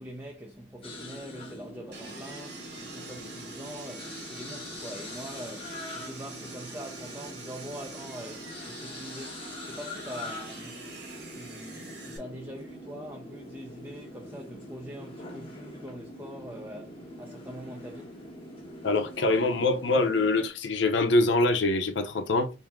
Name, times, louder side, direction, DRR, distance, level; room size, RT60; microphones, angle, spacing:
voice 1, 0.0-10.9 11.3-18.2, equal, 15° right, 0.5 m, -43 dB
sound 1, 0.8-20.5, left 1 dB, 30° left, 1.0 m, -43 dB
Sawing, 1.9-12.2, right 3 dB, 65° right, 1.5 m, -45 dB
voice 2, 18.8-22.5, left 2 dB, 75° left, 0.6 m, -24 dB
3.6 x 2.6 x 3.5 m
head